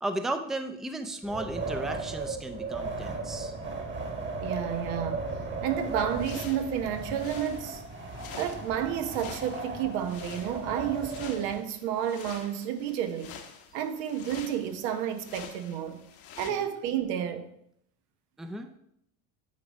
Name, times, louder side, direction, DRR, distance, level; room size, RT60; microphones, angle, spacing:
voice 1, 0.0-3.5 16.5-16.6 18.4-18.7, right 1 dB, ahead, 0.5 m, -35 dB
Wind, 1.2-11.6, right 3 dB, 25° right, 1.4 m, -36 dB
voice 2, 4.4-5.3 5.6-7.8 8.4-13.4 13.7-16.0 16.4-17.4, right 9 dB, 75° right, 1.0 m, -31 dB
sound 1, 5.8-16.5, left 8 dB, 60° left, 1.2 m, -48 dB
9.3 x 3.4 x 5.3 m
supercardioid pair, 100°, 41 cm